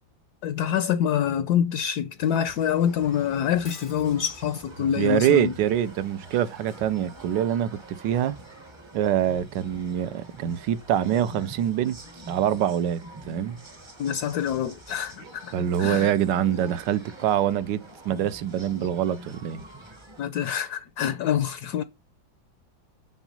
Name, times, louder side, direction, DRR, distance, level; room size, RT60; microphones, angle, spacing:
voice 1, 0.4-5.5 14.0-16.1 20.2-21.8, left 9 dB, 70° left, 1.0 m, -26 dB
sound 1, 2.2-20.2, right 1 dB, 25° right, 0.7 m, -46 dB
Shatter, 3.6-4.2, left 3 dB, 35° left, 0.5 m, -45 dB
voice 2, 5.0-8.4 8.9-12.0 12.3-13.0 13.3-13.6 15.5-17.8 18.0-19.6, right 10 dB, 75° right, 1.3 m, -25 dB
7.1 x 6.1 x 5.3 m
omnidirectional pair, 2.1 m